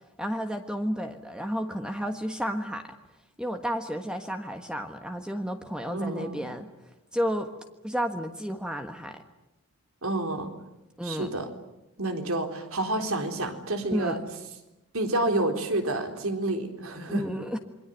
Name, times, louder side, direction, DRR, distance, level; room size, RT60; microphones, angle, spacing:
voice 1, 0.2-3.0 3.4-6.7 7.1-7.5 7.8-9.2 11.0-11.3 13.9-14.3 17.1-17.6, equal, 5° right, 5 dB, 1.4 m, -31 dB
voice 2, 5.9-6.4 10.0-10.5 11.0-11.5 12.0-14.2 14.9-17.2, right 2 dB, 75° right, 5 dB, 3.9 m, -29 dB
27.5 x 23.5 x 9.3 m, 0.96 s
head